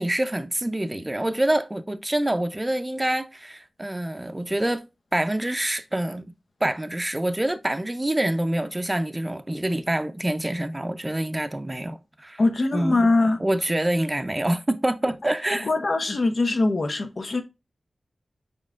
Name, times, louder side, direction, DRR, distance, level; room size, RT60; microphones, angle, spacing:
voice 1, 0.0-4.8 5.1-6.3 6.6-12.4 12.7-13.0 13.4-15.7, right 1 dB, 25° right, 0.5 m, -26 dB
voice 2, 12.4-13.4 15.6-17.4, left 2 dB, 65° left, 0.8 m, -22 dB
5.3 x 3.7 x 2.4 m
cardioid pair, 40°, 0 cm